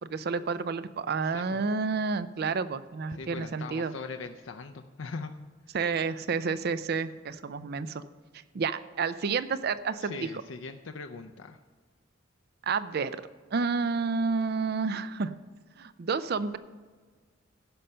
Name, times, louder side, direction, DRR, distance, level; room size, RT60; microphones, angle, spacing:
voice 1, 0.0-3.9 5.7-8.0 8.5-10.1 12.6-13.2 13.5-15.3 15.8-16.6, right 4 dB, 55° right, 14 dB, 0.5 m, -30 dB
voice 2, 1.2-1.6 3.1-5.3 5.7-5.8 10.0-11.6, left 4 dB, 75° left, 6 dB, 0.6 m, -40 dB
16.5 x 5.6 x 5.5 m, 1.5 s
head